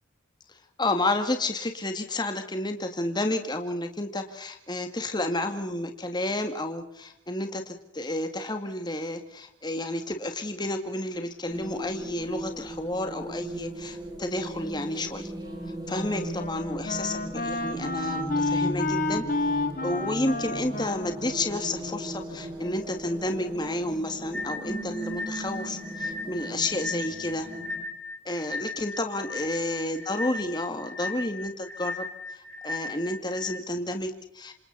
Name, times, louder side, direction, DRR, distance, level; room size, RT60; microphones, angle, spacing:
voice 1, 0.8-15.3 15.9-19.3 19.8-27.5 28.2-34.5, left 1 dB, 25° left, 6 dB, 2.2 m, -31 dB
sound 1, 11.4-27.8, right 1 dB, 20° right, 5.1 m, -38 dB
Wind instrument woodwind instrument, 15.4-22.5, left 2 dB, 45° left, 3.2 m, -31 dB
sound 2, 24.3-33.5, left 2 dB, 5° left, 6.8 m, -37 dB
28.0 x 27.0 x 4.2 m, 0.73 s
head